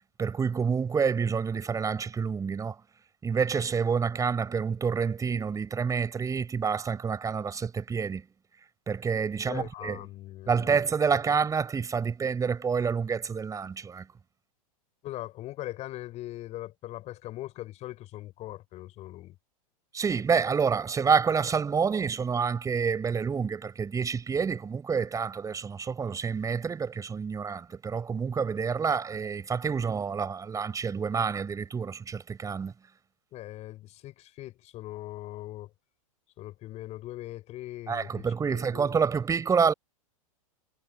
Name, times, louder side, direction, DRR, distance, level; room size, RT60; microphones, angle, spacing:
voice 1, 0.2-2.8 3.2-8.2 8.9-10.0 10.5-14.1 19.9-32.7 37.9-39.7, right 6 dB, 20° right, 6.4 m, -28 dB
voice 2, 9.5-10.8 15.0-19.4 33.3-35.7 36.4-38.3 38.5-39.0, left 15 dB, 40° left, 6.9 m, -40 dB
hypercardioid pair, 110°, 18 cm